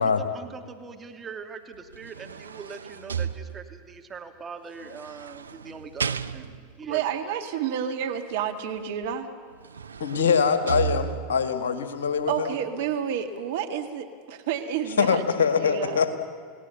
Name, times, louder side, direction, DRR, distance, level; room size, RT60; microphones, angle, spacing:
voice 1, 0.0-7.0, right 5 dB, 25° right, 4 dB, 2.6 m, -41 dB
sound 1, 1.7-4.0 4.8-6.8 9.0-9.1 9.5-11.5 12.1-12.2, right 8 dB, 85° right, 0.6 m, -34 dB
voice 2, 6.8-9.3 12.3-16.0, right 8 dB, 65° right, 7 dB, 1.8 m, -30 dB
voice 3, 10.0-12.5 15.0-16.2, left 6 dB, 75° left, 9 dB, 1.8 m, -23 dB
29.5 x 17.5 x 7.1 m, 2.1 s
hypercardioid pair, 85°, 0 cm